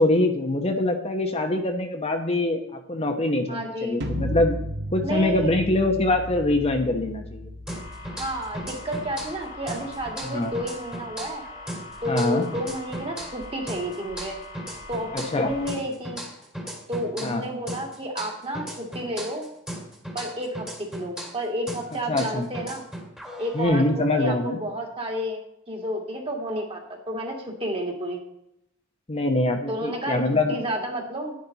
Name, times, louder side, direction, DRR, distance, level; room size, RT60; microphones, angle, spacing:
voice 1, 0.0-2.6 2.9-4.5 4.9-7.5 10.3-10.5 12.1-12.4 15.1-15.5 17.2-17.4 22.1-22.5 23.5-24.6 29.1-30.6, left 2 dB, 30° left, 4 dB, 1.0 m, -23 dB
voice 2, 3.5-4.0 5.0-5.5 8.2-11.4 12.0-14.4 14.9-16.2 16.9-19.5 20.1-22.8 23.4-25.4 25.7-28.2 29.7-30.2 30.5-31.3, equal, 30° right, 1 dB, 2.2 m, -31 dB
sound 1, 4.0-10.0, left 1 dB, 60° right, 1.5 m, -35 dB
sound 2, 7.7-15.7, left 2 dB, 85° left, 3.2 m, -42 dB
sound 3, 7.7-9.4 9.7-13.4 13.7-17.4 17.7-21.4 21.7-23.7, equal, 5° right, 1.8 m, -37 dB
10.5 x 10.5 x 4.0 m, 0.77 s
head